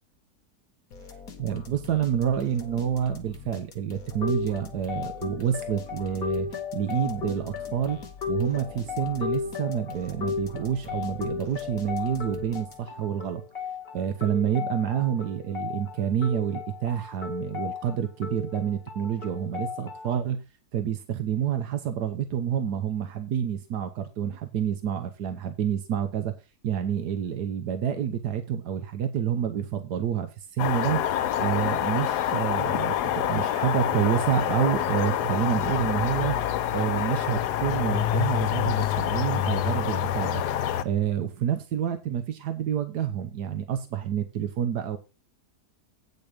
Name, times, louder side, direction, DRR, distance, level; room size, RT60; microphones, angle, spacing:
sound 1, 0.9-13.1, left 5 dB, 65° left, 1.8 m, -45 dB
voice 1, 1.4-6.5 6.7-8.0 8.3-13.4 13.9-20.4 20.7-26.3 26.6-31.1 31.4-36.4 36.7-40.4 40.8-45.0, right 9 dB, 85° right, 8 dB, 1.6 m, -28 dB
sound 2, 4.2-20.2, left 6 dB, 35° left, 2.0 m, -35 dB
sound 3, 30.6-40.8, left 11 dB, 90° left, 1.3 m, -26 dB
8.8 x 6.6 x 5.0 m, 0.28 s
omnidirectional pair, 1.7 m